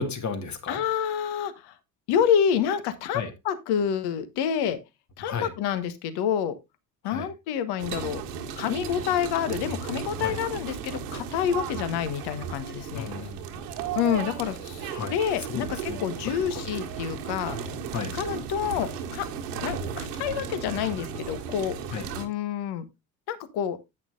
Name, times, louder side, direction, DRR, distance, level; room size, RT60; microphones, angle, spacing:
voice 1, 0.0-0.8 3.1-3.3 5.2-5.5 7.0-7.3 10.2-10.4 12.9-13.6 14.9-16.0 16.5-16.6 17.9-18.2 21.9-22.1, left 5 dB, 35° left, 2.0 m, -34 dB
voice 2, 0.7-1.7 2.1-4.8 5.2-6.6 7.0-8.2 8.6-13.1 13.9-17.6 18.1-19.3 19.6-21.8 22.1-22.9 23.3-23.8, left 8 dB, 55° left, 1.3 m, -28 dB
sound 1, 7.8-22.3, right 6 dB, 75° right, 1.7 m, -35 dB
10.5 x 8.8 x 2.6 m
hypercardioid pair, 65°, 46 cm